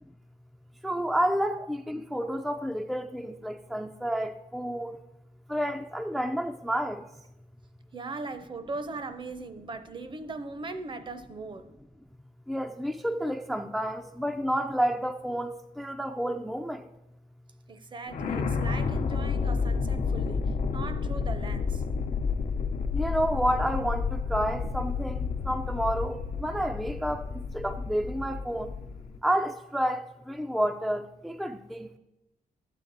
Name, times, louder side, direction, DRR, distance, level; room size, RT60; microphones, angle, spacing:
voice 1, 0.8-5.0 5.5-7.0 12.5-16.8 22.9-28.7 29.2-31.9, equal, ahead, 0.4 m, -30 dB
voice 2, 7.9-11.7 17.7-21.8, right 3 dB, 35° right, 0.7 m, -39 dB
sound 1, 18.1-29.2, left 5 dB, 70° left, 0.8 m, -30 dB
12.0 x 8.4 x 3.9 m
wide cardioid pair, 125°, 14 cm